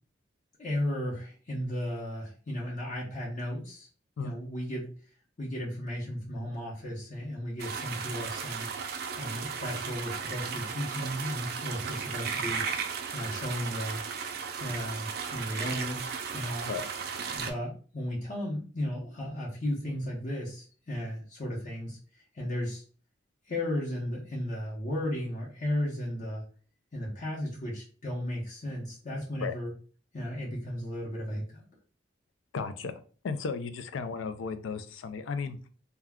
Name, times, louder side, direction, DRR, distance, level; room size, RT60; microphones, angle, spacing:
voice 1, 0.6-3.9 4.2-4.9 5.4-8.7 9.2-12.6 13.1-14.0 14.6-16.7 17.3-22.0 22.3-22.8 23.5-26.4 26.9-29.7 30.1-31.6, left 1 dB, 40° left, -4 dB, 0.7 m, -35 dB
sound 1, 7.6-17.5, right 6 dB, 55° right, 0.4 m, -35 dB
voice 2, 32.5-35.6, left 5 dB, 85° left, 10 dB, 0.4 m, -35 dB
2.3 x 2.2 x 3.5 m, 0.40 s
head